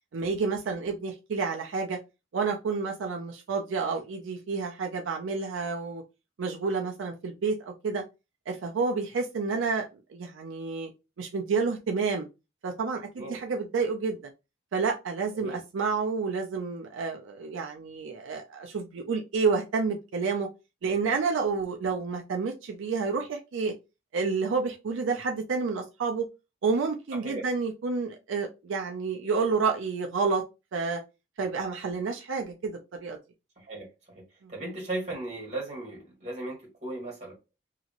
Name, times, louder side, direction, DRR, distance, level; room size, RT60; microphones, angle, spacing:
voice 1, 0.1-2.0 2.3-6.0 6.4-8.0 8.5-9.8 10.1-10.9 11.2-12.3 12.6-14.2 14.7-20.5 20.8-23.7 24.1-26.3 26.6-30.4 30.7-31.0 31.4-33.2 34.4-34.5, right 4 dB, 80° right, 0.4 m, -29 dB
voice 2, 34.5-37.3, right 2 dB, 35° right, 1.5 m, -36 dB
2.8 x 2.5 x 2.8 m
head